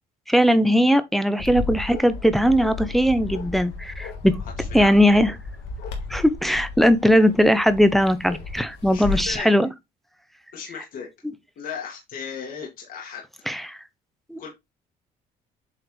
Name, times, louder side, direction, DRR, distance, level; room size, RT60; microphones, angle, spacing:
voice 1, 0.3-4.4 4.7-5.3 6.1-9.7 13.5-13.8 14.3-14.4, equal, ahead, 0.7 m, -19 dB
Bark, 1.4-9.4, left 4 dB, 90° left, 1.6 m, -34 dB
voice 2, 4.6-5.1 8.9-9.5 10.5-11.1 11.6-13.2 14.4-14.5, left 7 dB, 55° left, 2.0 m, -36 dB
7.7 x 3.9 x 3.2 m
cardioid pair, 110°, 17 cm